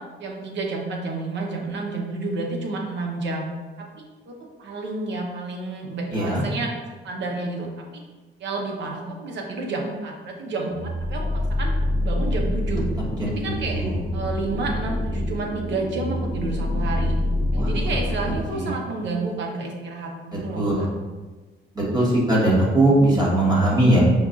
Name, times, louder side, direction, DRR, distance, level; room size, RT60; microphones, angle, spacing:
voice 1, 0.2-3.5 3.8-6.7 7.0-7.8 8.4-11.7 12.0-12.9 13.3-13.8 14.1-17.2 17.5-20.9, right 3 dB, 65° right, 1 dB, 0.7 m, -30 dB
voice 2, 6.1-6.4 13.2-14.0 17.6-17.7 18.5-18.7 20.6-20.8 21.7-24.0, right 1 dB, 20° right, -6 dB, 1.2 m, -20 dB
sound 1, 10.7-18.4, left 1 dB, 45° left, 0.6 m, -26 dB
5.1 x 2.4 x 2.4 m, 1.3 s
cardioid pair, 90°, 20 cm